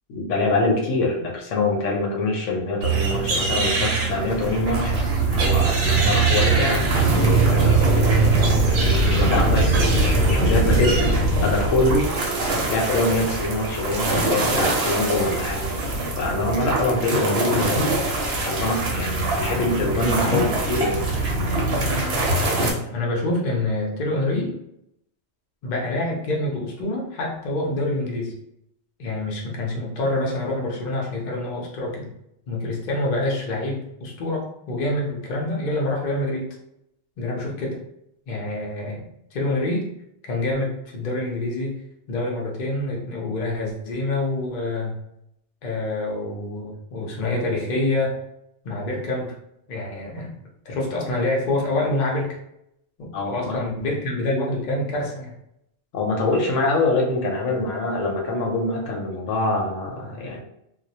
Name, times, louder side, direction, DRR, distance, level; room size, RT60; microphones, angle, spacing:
voice 1, 0.1-6.8 7.1-11.1 11.4-15.7 16.2-18.2 18.4-21.0 53.1-53.6 55.9-60.4, left 2 dB, 75° left, 1 dB, 0.9 m, -25 dB
sound 1, 2.8-22.7, right 3 dB, 65° right, 0.8 m, -22 dB
voice 2, 21.8-24.5 25.6-28.3 29.0-32.1 32.5-36.6 37.2-37.8 38.3-39.0 39.3-39.9 40.3-41.8 42.1-45.0 45.6-48.2 48.6-49.3 49.7-50.3 50.7-52.4 53.0-55.3, left 2 dB, 50° left, -2 dB, 0.6 m, -26 dB
2.2 x 2.0 x 2.7 m, 0.78 s
omnidirectional pair, 1.3 m